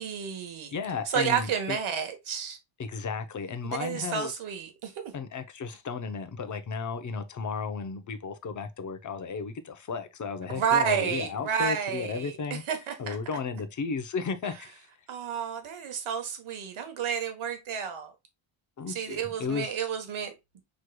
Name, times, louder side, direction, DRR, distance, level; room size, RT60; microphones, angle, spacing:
voice 1, 0.0-0.7 1.0-2.6 3.6-4.9 10.5-13.2 14.4-14.5 15.1-18.1 18.9-20.3, right 7 dB, 80° right, 1.3 m, -31 dB
voice 2, 0.7-1.8 2.8-4.3 5.1-12.6 13.0-14.8 18.8-19.7, left 5 dB, 40° left, 0.7 m, -34 dB
6.4 x 3.1 x 2.2 m
wide cardioid pair, 140°, 48 cm